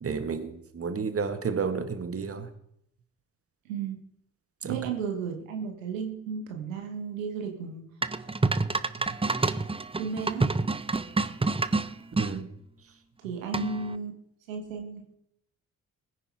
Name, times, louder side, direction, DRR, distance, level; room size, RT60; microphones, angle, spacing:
voice 1, 0.0-2.5 4.6-4.8 12.1-12.4, right 5 dB, 35° right, 8 dB, 2.0 m, -31 dB
voice 2, 3.7-4.0 4.7-7.9 10.0-10.6 13.2-14.1 14.5-15.1, right 5 dB, 80° right, 4 dB, 1.8 m, -34 dB
sound 1, 8.0-12.3 13.5-14.0, right 3 dB, 15° right, 0.9 m, -27 dB
20.5 x 9.9 x 5.0 m, 0.75 s
figure-of-eight pair, 40°, 40 cm